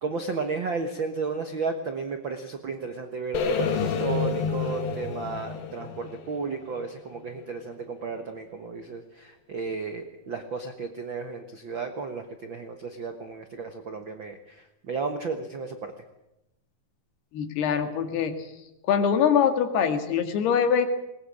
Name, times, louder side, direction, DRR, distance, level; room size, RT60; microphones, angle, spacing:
voice 1, 0.0-15.9, right 4 dB, 80° right, 6 dB, 1.0 m, -33 dB
sound 1, 3.3-7.4, left 5 dB, 65° left, 3.6 m, -29 dB
voice 2, 17.3-18.4 18.9-20.9, left 7 dB, 90° left, 7 dB, 4.0 m, -23 dB
20.5 x 19.5 x 8.6 m, 0.86 s
omnidirectional pair, 4.5 m